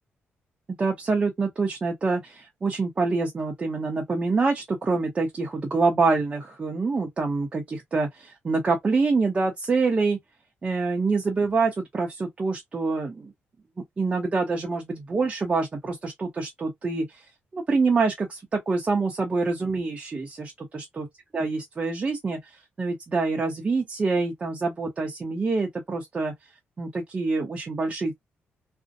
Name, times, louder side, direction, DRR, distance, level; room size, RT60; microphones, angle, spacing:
voice 1, 0.8-10.2 10.6-13.3 14.0-17.2 17.5-21.0 21.3-26.3 26.8-28.1, right 4 dB, 30° right, 0.6 m, -26 dB
2.5 x 2.1 x 2.6 m
cardioid pair, 120°, 4 cm